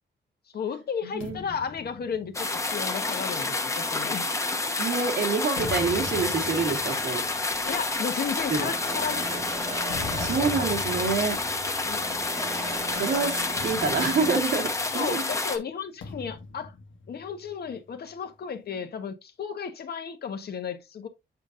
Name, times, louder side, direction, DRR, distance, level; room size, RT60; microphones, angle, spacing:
voice 1, 0.5-4.3 7.6-9.4 11.8-12.1 12.9-13.2 15.0-16.7 17.1-21.1, left 6 dB, 55° left, 1.3 m, -34 dB
sound 1, 1.2-4.8 5.3-12.7 13.0-13.2 13.6-15.2 16.0-17.8, left 4 dB, 85° left, 1.5 m, -41 dB
sound 2, 2.3-15.6, left 3 dB, 15° left, 1.0 m, -29 dB
voice 2, 4.8-7.2 8.5-8.7 10.1-11.4 12.4-12.5 12.9-15.2, right 4 dB, 65° right, 2.1 m, -27 dB
sound 3, 7.5-14.4, right 4 dB, 40° right, 1.6 m, -40 dB
8.3 x 5.4 x 2.5 m
wide cardioid pair, 155°, 20 cm